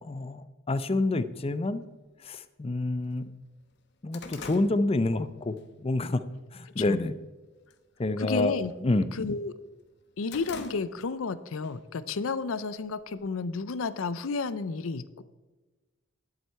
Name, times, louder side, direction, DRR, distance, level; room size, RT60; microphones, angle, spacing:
voice 1, 0.0-1.8 2.2-3.3 4.0-6.3 6.5-7.1 8.0-8.5 8.8-9.1, left 2 dB, 30° left, 13 dB, 0.5 m, -28 dB
sound 1, 1.3-1.4 2.3-2.4 2.8-2.9 3.3-5.7 6.1-6.4 6.8-7.3 7.6-7.9 8.2-9.4 9.8-11.3 11.6-11.8 12.7-13.5, left 4 dB, 55° left, 1.0 m, -46 dB
voice 2, 8.2-8.7 9.1-9.5 10.2-15.2, left 4 dB, 75° left, 15 dB, 0.5 m, -31 dB
11.0 x 7.8 x 4.5 m, 1.2 s
head